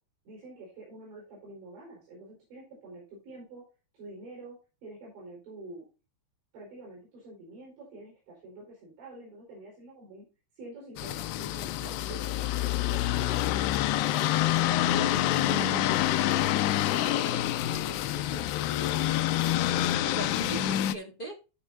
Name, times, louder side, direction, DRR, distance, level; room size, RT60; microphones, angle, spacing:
voice 1, 0.2-3.6 3.9-5.8 6.5-10.3 10.6-13.0, right 2 dB, 70° right, -3 dB, 6.8 m, -47 dB
sound 1, 11.0-20.9, left 13 dB, 80° left, 2.6 m, -27 dB
voice 2, 14.8-21.4, right 1 dB, 45° left, 0 dB, 0.6 m, -42 dB
16.0 x 6.6 x 2.7 m, 0.32 s
omnidirectional pair, 5.3 m